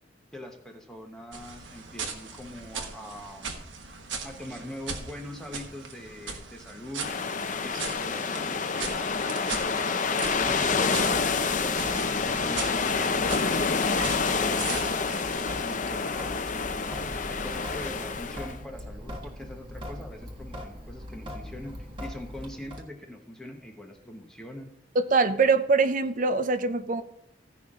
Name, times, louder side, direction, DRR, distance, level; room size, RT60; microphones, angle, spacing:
voice 1, 0.3-3.6 4.2-7.1 7.6-10.0 10.3-11.9 12.2-14.9 15.3-16.9 17.3-24.7, left 1 dB, 5° left, 1 dB, 1.0 m, -43 dB
sound 1, 1.3-15.4, right 5 dB, 80° right, 1.3 m, -39 dB
sound 2, 7.0-18.5, left 4 dB, 40° left, 0.6 m, -28 dB
Sink (filling or washing) / Drip, 10.4-22.8, equal, 25° right, 1.4 m, -41 dB
voice 2, 25.0-27.0, right 4 dB, 45° right, 11 dB, 0.5 m, -23 dB
16.0 x 5.7 x 3.7 m, 0.77 s
head